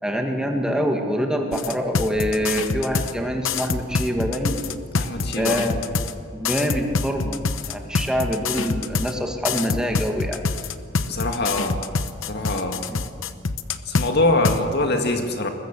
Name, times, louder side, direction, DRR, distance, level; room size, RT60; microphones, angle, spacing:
voice 1, 0.0-4.6 5.3-5.8 6.3-7.4 7.7-10.4 12.9-13.0, equal, 5° right, 2 dB, 1.9 m, -25 dB
sound 1, 1.5-3.1 3.4-6.1 6.5-9.1 9.4-14.1 14.4-14.6, left 4 dB, 85° left, 0.9 m, -25 dB
voice 2, 5.0-5.6 11.1-11.8 12.3-12.8 13.9-15.5, left 2 dB, 55° left, 5 dB, 2.0 m, -23 dB
21.5 x 21.0 x 7.5 m, 2.3 s
head